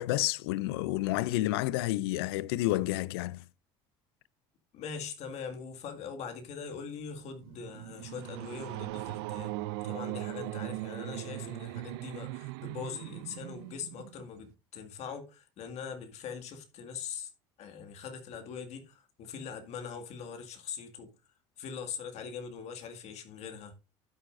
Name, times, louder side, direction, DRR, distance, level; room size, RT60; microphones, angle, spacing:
voice 1, 0.0-3.4, left 16 dB, 90° left, 0.5 m, -30 dB
voice 2, 4.7-9.5 9.8-17.3 17.6-21.1 21.6-23.7, left 6 dB, 60° left, 2.0 m, -42 dB
sound 1, 7.1-14.4, right 18 dB, 85° right, 0.4 m, -39 dB
12.5 x 8.3 x 2.6 m
supercardioid pair, 90°, 13 cm